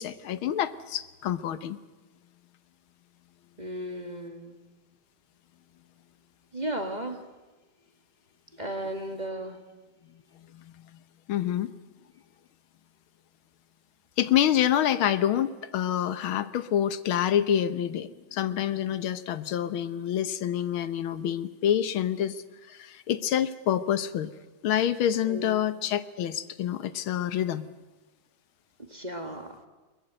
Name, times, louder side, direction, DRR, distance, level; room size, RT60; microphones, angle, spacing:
voice 1, 0.0-1.8 10.5-10.7 11.3-11.7 14.2-22.4 22.7-24.3 24.6-27.7, left 10 dB, 90° left, 13 dB, 1.8 m, -27 dB
voice 2, 3.6-4.6 6.5-7.3 8.5-9.6 25.2-25.7 28.8-29.7, right 1 dB, 20° right, 5 dB, 1.8 m, -35 dB
22.0 x 21.5 x 9.1 m, 1.2 s
omnidirectional pair, 2.2 m